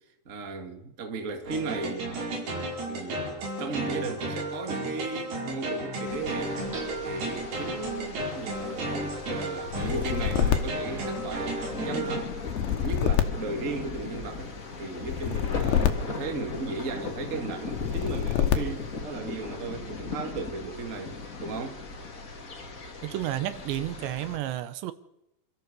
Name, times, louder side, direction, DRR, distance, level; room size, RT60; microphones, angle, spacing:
voice 1, 0.2-2.2 2.9-6.6 7.0-11.6 11.8-12.3 12.8-14.5 14.8-21.8, right 3 dB, 30° right, 1.4 m, -36 dB
sound 1, 1.4-12.2, right 1 dB, 65° right, 6.8 m, -33 dB
sound 2, 6.0-24.4, left 4 dB, 40° left, 1.2 m, -39 dB
sound 3, 9.7-11.7 12.4-14.3 15.0-16.9 17.7-19.0, left 10 dB, 80° left, 3.6 m, -27 dB
voice 2, 23.0-24.9, right 13 dB, 80° right, 3.2 m, -31 dB
27.5 x 14.0 x 6.9 m
omnidirectional pair, 5.1 m